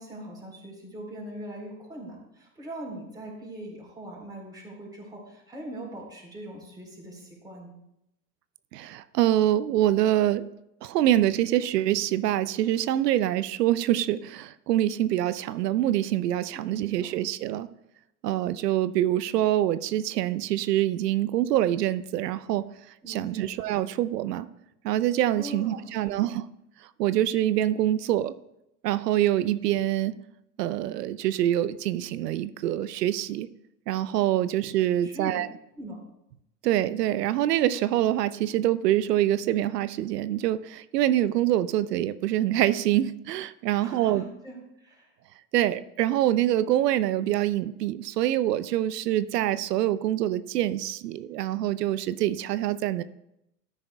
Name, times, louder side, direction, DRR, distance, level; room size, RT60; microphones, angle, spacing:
voice 1, 0.0-7.7 16.5-17.1 23.0-23.5 25.4-26.2 35.0-35.4 35.8-36.0 43.8-45.1, right 1 dB, 10° right, -2 dB, 3.8 m, -41 dB
voice 2, 8.7-10.4 10.8-17.7 18.2-22.6 23.1-24.5 24.8-26.5 27.0-28.3 28.8-30.1 30.6-33.5 33.9-35.5 36.6-44.3 45.5-53.0, right 13 dB, 75° right, 14 dB, 0.6 m, -25 dB
13.5 x 10.0 x 2.3 m, 0.82 s
hypercardioid pair, 115°, 48 cm